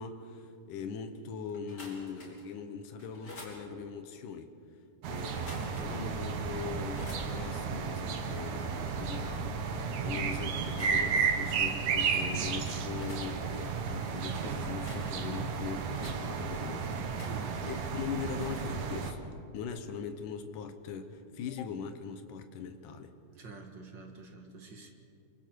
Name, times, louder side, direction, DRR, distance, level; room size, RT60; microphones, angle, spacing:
voice 1, 0.0-4.5 5.1-9.6 10.0-23.1, left 6 dB, 85° left, 7 dB, 2.7 m, -41 dB
sound 1, 1.5-2.5 3.0-3.6 5.3-5.9 6.2-6.3 6.7-7.3 10.5-11.1 11.4-11.7 12.2-13.3 14.6-15.4 15.8-16.2 17.0-17.8 18.3-18.7, left 2 dB, 30° left, 4.2 m, -50 dB
sound 2, 5.0-19.1, right 5 dB, 70° right, 2.5 m, -33 dB
voice 2, 17.2-17.7 23.4-24.9, right 5 dB, 40° right, 3 dB, 2.2 m, -44 dB
27.0 x 24.0 x 4.6 m, 2.5 s
omnidirectional pair, 3.6 m